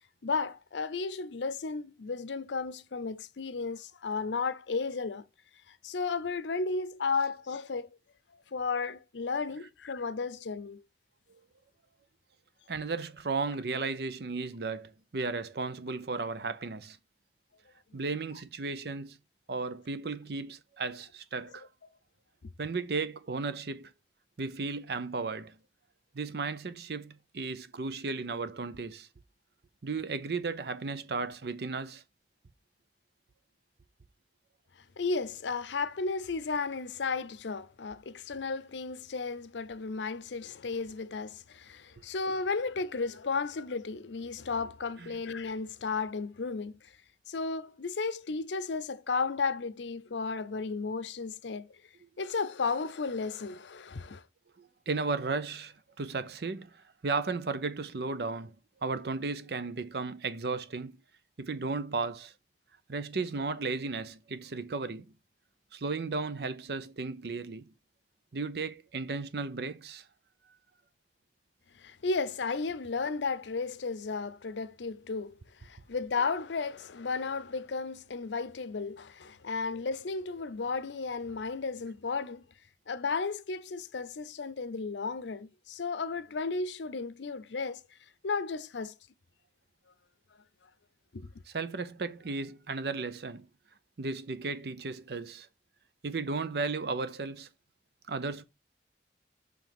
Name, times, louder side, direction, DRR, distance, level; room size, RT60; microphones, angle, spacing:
voice 1, 0.2-5.2 5.7-7.9 8.5-10.8 35.0-46.9 47.3-51.8 52.2-54.2 71.7-82.4 82.9-87.8 88.2-88.9 91.1-91.3, left 4 dB, 85° left, 0.6 m, -34 dB
voice 2, 12.7-17.0 17.9-19.2 19.5-21.7 22.6-23.9 24.4-25.6 26.1-29.1 29.8-32.0 45.0-45.2 52.0-52.1 54.6-58.6 58.8-60.9 61.4-62.3 62.9-65.1 65.7-67.7 68.3-70.1 91.5-93.5 94.0-95.5 96.0-97.5 98.1-98.4, right 4 dB, 60° right, 0.6 m, -35 dB
7.0 x 3.4 x 5.9 m
head